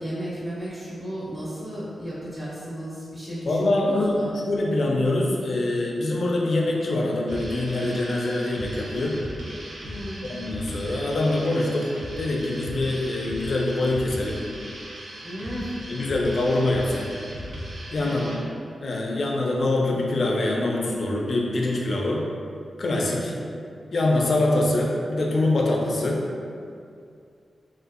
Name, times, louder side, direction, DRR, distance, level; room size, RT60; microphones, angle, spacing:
voice 1, 0.0-4.3 9.8-10.2 15.2-15.7 18.0-18.4 23.1-23.6, equal, 25° right, -9 dB, 0.5 m, -34 dB
voice 2, 3.5-9.2 10.2-14.4 15.9-17.1 17.9-18.4 18.8-22.2 22.8-23.3 23.9-26.2, left 2 dB, 60° left, -1 dB, 0.3 m, -24 dB
sound 1, 7.3-18.4, equal, 85° right, 0.4 m, -38 dB
2.6 x 2.3 x 2.4 m, 2.4 s
wide cardioid pair, 95°, 0 cm